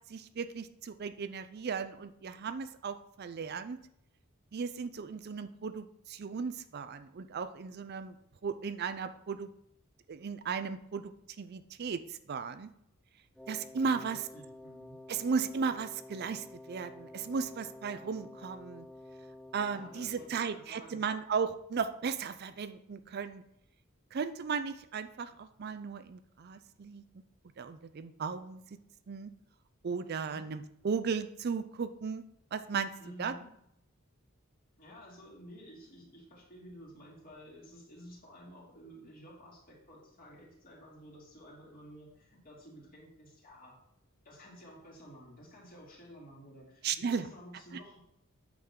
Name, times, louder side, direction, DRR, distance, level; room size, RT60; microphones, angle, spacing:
voice 1, 0.1-3.8 4.5-8.2 8.4-9.5 10.1-11.1 11.4-12.7 13.5-14.2 15.1-18.9 19.5-23.4 24.1-27.0 27.6-28.6 29.1-29.3 29.8-32.2 32.5-32.9 33.2-33.3 46.8-47.3 47.7-47.8, right 5 dB, 50° right, 11 dB, 0.4 m, -36 dB
Wind instrument woodwind instrument, 13.3-20.7, left 1 dB, 5° left, 0.6 m, -50 dB
voice 2, 13.8-15.0 19.7-21.2 30.2-30.5 33.0-33.5 34.8-43.8 44.2-48.0, equal, 45° left, -3 dB, 2.7 m, -52 dB
8.6 x 6.1 x 3.7 m, 0.77 s
head